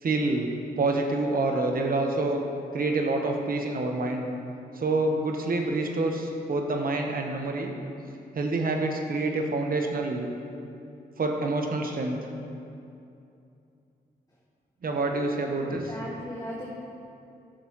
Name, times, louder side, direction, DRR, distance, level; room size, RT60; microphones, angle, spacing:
voice 1, 0.0-0.5 0.8-2.4 2.7-4.2 4.7-7.7 8.3-10.3 11.2-12.2 14.8-15.9, right 2 dB, 55° right, 3 dB, 1.1 m, -27 dB
voice 2, 15.6-16.7, equal, 20° left, -4 dB, 1.2 m, -37 dB
13.0 x 6.7 x 3.1 m, 2.7 s
cardioid pair, 60°, 17 cm